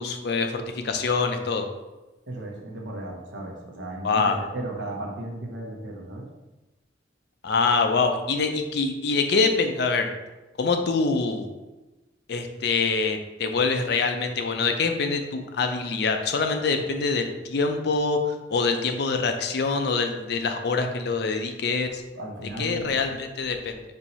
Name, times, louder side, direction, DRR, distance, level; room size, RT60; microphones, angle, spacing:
voice 1, 0.0-1.7 4.0-4.4 7.4-10.1 10.6-11.5 12.3-22.0 22.6-23.8, left 4 dB, 60° left, 6 dB, 0.5 m, -25 dB
voice 2, 2.3-6.3 22.1-22.8, right 1 dB, 85° right, 1 dB, 0.9 m, -35 dB
4.3 x 2.7 x 4.2 m, 1.1 s
head